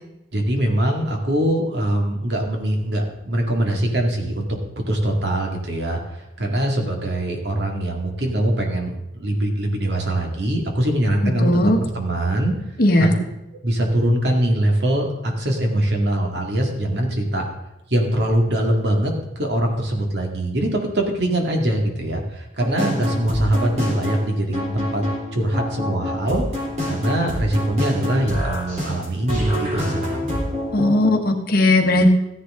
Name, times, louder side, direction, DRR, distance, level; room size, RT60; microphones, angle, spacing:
voice 1, 0.3-4.5 4.9-6.0 6.4-12.5 13.0-13.1 13.6-17.5 17.9-25.0 25.3-26.4 26.9-30.2, right 1 dB, 65° right, 1 dB, 2.2 m, -22 dB
voice 2, 11.2-11.8 12.8-13.1 30.7-32.1, left 1 dB, 55° left, 4 dB, 1.4 m, -17 dB
sound 1, 22.6-31.1, left 1 dB, 40° right, 3.7 m, -27 dB
14.5 x 10.5 x 3.7 m, 0.90 s
head